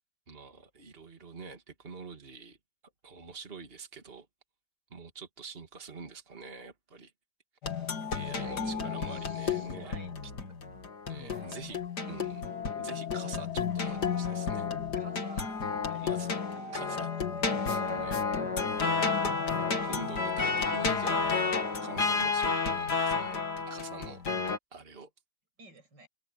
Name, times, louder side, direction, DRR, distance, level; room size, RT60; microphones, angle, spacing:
voice 1, 0.3-2.6 3.0-4.3 4.9-7.1 8.1-10.0 11.1-11.8 12.1-14.7 16.0-16.3 16.7-17.1 17.7-18.2 19.1-21.3 21.8-23.4 23.6-24.2 24.7-25.1, right 4 dB, 85° right, 0.5 m, -45 dB
sound 1, 7.6-24.6, left 5 dB, 55° left, 1.1 m, -31 dB
voice 2, 8.0-10.5 11.2-11.8 15.0-16.2 16.9-17.5 17.8-18.2 25.6-26.1, right 2 dB, 20° right, 7.2 m, -53 dB
omnidirectional pair, 5.6 m